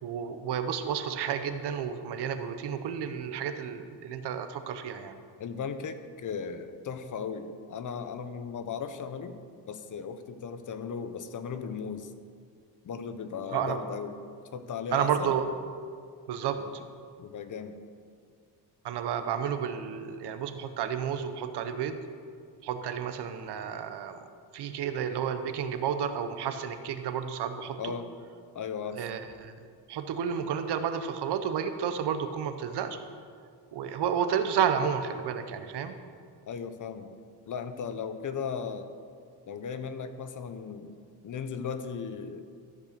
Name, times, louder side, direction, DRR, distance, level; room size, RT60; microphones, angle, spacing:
voice 1, 0.0-5.2 13.5-13.8 14.9-15.5 16.3-16.8 18.8-22.0 22.6-24.2 24.5-27.9 29.0-33.0 33.7-36.0, right 8 dB, 75° right, 9 dB, 0.9 m, -31 dB
voice 2, 5.4-9.4 9.7-12.1 12.8-14.2 14.5-15.3 16.6-16.8 17.2-17.8 27.8-28.1 28.5-29.0 36.5-37.1 37.5-38.9 39.4-41.0 41.2-42.5, left 6 dB, 50° left, 10 dB, 0.8 m, -37 dB
13.5 x 5.4 x 6.7 m, 2.1 s
cardioid pair, 125°, 41 cm